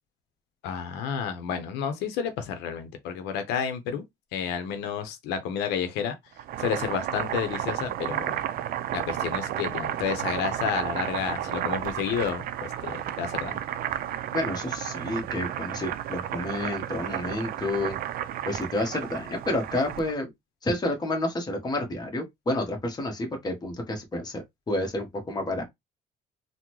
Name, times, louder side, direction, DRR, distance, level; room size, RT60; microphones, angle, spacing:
voice 1, 0.6-4.0 4.3-6.1 6.6-8.4 8.9-13.6, left 7 dB, 90° left, 0.7 m, -30 dB
Boiling, 6.3-20.1, right 11 dB, 60° right, 0.4 m, -32 dB
voice 2, 14.3-18.0 18.5-20.3 20.6-25.6, left 1 dB, 25° left, 1.1 m, -30 dB
3.7 x 2.1 x 3.0 m
cardioid pair, 110°, 17 cm